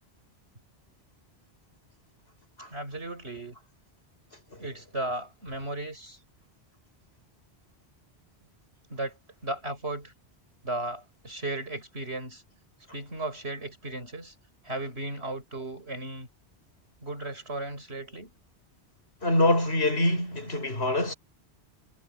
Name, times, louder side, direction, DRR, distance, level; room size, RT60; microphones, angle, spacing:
voice 1, 2.7-3.6 4.6-6.2 8.9-9.2 9.4-10.1 10.6-12.4 12.9-14.3 14.6-16.3 17.0-18.3, right 2 dB, 70° right, 6.9 m, -35 dB
voice 2, 19.2-21.1, left 1 dB, 65° left, 6.0 m, -25 dB
omnidirectional pair, 1.1 m